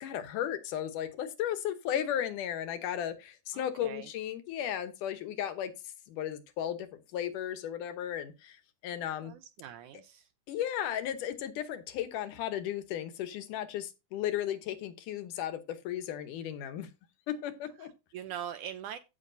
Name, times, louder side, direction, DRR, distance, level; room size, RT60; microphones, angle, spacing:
voice 1, 0.0-5.7 6.1-8.6 8.8-9.3 10.5-16.9 17.3-17.9, left 10 dB, 70° left, 2.4 m, -35 dB
voice 2, 3.5-4.1 9.2-10.3 17.8-19.0, right 10 dB, 75° right, 1.9 m, -43 dB
15.5 x 6.3 x 2.6 m
omnidirectional pair, 4.0 m